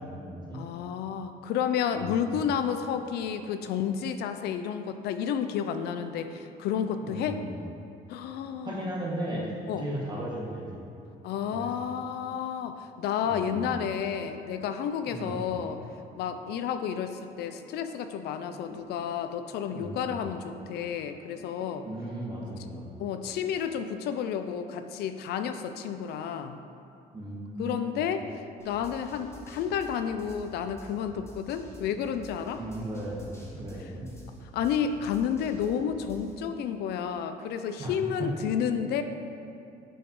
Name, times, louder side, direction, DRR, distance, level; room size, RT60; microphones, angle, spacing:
voice 1, 0.0-0.6 1.9-2.4 7.0-7.5 8.6-10.8 11.5-11.7 13.2-13.7 15.1-15.4 19.7-20.2 21.8-22.9 27.1-28.1 32.5-33.3 33.5-34.1 37.8-37.9 38.2-38.5, right 1 dB, 25° right, -5 dB, 1.5 m, -36 dB
voice 2, 0.5-7.4 8.1-8.8 9.7-9.9 11.2-15.8 16.2-21.9 23.0-26.6 27.6-32.6 33.8-33.9 34.5-39.0, left 8 dB, 75° left, 9 dB, 0.4 m, -31 dB
sound 1, 15.4-16.1 16.3-18.0 18.3-20.0 20.3-22.0 22.2-23.8 24.1-24.7, equal, 10° right, 1.3 m, -53 dB
sound 2, 28.6-36.3, equal, 15° left, 1.4 m, -49 dB
8.8 x 5.0 x 3.1 m, 2.7 s
cardioid pair, 110°, 17 cm